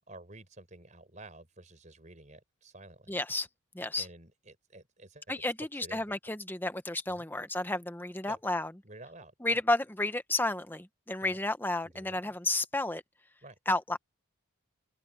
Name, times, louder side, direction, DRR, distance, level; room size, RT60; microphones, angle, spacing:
voice 1, 0.1-3.2 3.9-5.2 5.8-6.2 7.2-7.3 8.3-8.4 8.8-9.6 11.2-11.4 11.8-12.3 13.4-13.6, right 2 dB, 35° right, 5.0 m, -51 dB
voice 2, 3.1-3.5 3.7-4.1 5.3-8.7 9.4-13.0 13.7-14.0, left 2 dB, 10° left, 1.0 m, -32 dB
open air
head